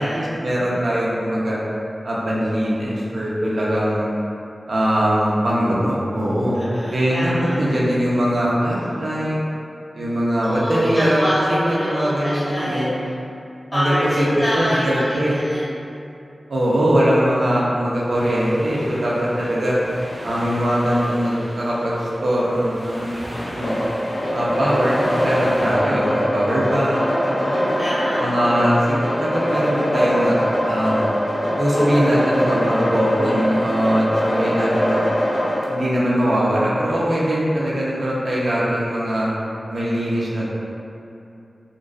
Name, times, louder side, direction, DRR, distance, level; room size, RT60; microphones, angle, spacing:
voice 1, 0.0-1.6 2.0-4.1 4.7-6.6 6.9-9.4 9.9-12.9 13.7-15.4 16.5-19.8 20.2-23.8 24.3-27.6 28.2-30.4 30.6-31.1 31.6-35.0 35.7-39.3 39.7-40.5, equal, 75° right, -6 dB, 0.5 m, -21 dB
voice 2, 6.5-7.6 10.4-13.1 13.7-15.6 27.3-28.2, equal, 20° left, -10 dB, 0.6 m, -25 dB
sound 1, 18.1-25.8, equal, 35° right, 0.6 m, -36 dB
sound 2, 23.6-35.6, equal, 75° left, 0.4 m, -22 dB
2.4 x 2.2 x 2.3 m, 2.7 s
wide cardioid pair, 80°, 0 cm